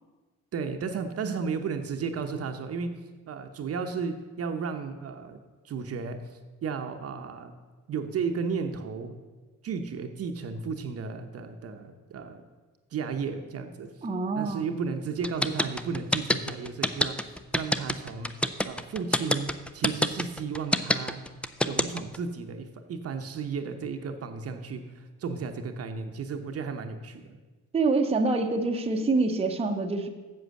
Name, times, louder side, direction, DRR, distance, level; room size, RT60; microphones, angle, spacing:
voice 1, 0.5-5.4 5.6-7.5 7.9-9.2 9.6-12.4 12.9-13.9 14.3-17.2 17.5-18.3 18.6-21.2 21.6-27.4, right 5 dB, 50° right, 6 dB, 0.9 m, -34 dB
voice 2, 14.0-14.7 27.7-30.1, right 3 dB, 20° right, 3 dB, 0.8 m, -26 dB
sound 1, 15.2-22.2, left 1 dB, 5° left, 0.4 m, -25 dB
7.9 x 7.4 x 6.4 m, 1.3 s
cardioid pair, 105°, 31 cm